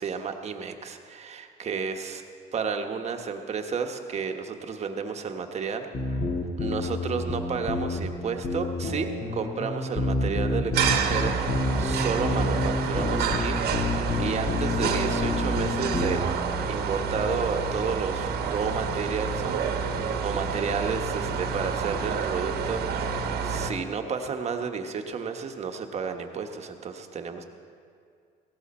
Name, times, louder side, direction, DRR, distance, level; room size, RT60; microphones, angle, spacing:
voice 1, 0.0-2.2 2.5-6.3 6.6-11.4 11.8-13.6 14.2-16.2 16.7-27.4, right 5 dB, 40° right, 5 dB, 1.1 m, -32 dB
sound 1, 5.9-16.2, left 2 dB, 35° left, 1.7 m, -29 dB
sound 2, 10.7-23.7, right 5 dB, 70° right, 1.2 m, -29 dB
17.0 x 14.0 x 4.3 m, 2.3 s
cardioid pair, 110°, 17 cm